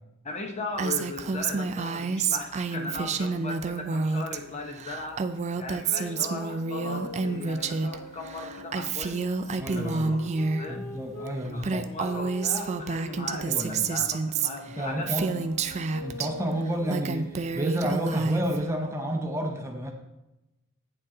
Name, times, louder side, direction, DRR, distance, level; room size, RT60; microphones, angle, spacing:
voice 1, 0.2-5.2 5.5-9.3 9.7-10.9 11.3-15.3, left 2 dB, 30° left, 3 dB, 0.8 m, -38 dB
Female speech woman speaking, 0.8-4.4 4.6-8.0 8.2-10.6 11.3-11.4 11.6-16.3 16.7-18.6, right 4 dB, 30° right, 0.4 m, -29 dB
sound 1, 5.9-11.4 12.0-17.6, left 1 dB, 85° left, 1.0 m, -44 dB
voice 2, 9.6-10.2 10.7-11.9 13.5-13.9 14.8-15.4 16.0-19.9, equal, 15° right, 3 dB, 0.8 m, -30 dB
8.8 x 6.8 x 3.7 m, 0.95 s
head